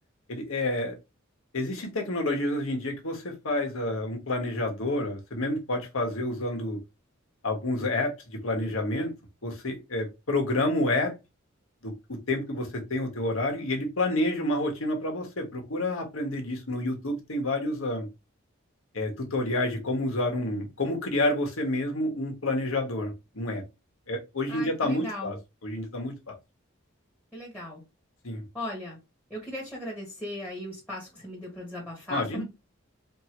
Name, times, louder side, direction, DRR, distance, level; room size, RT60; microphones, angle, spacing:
voice 1, 0.3-1.0 1.5-6.8 7.4-9.1 9.4-11.1 11.8-18.1 18.9-23.6 24.1-25.4 25.6-26.3 28.2-28.4 32.1-32.4, left 1 dB, 85° left, 1.4 m, -29 dB
voice 2, 24.5-25.4 27.3-27.8 28.5-29.0 29.3-32.4, left 1 dB, 5° left, 1.5 m, -37 dB
4.5 x 2.7 x 3.0 m
head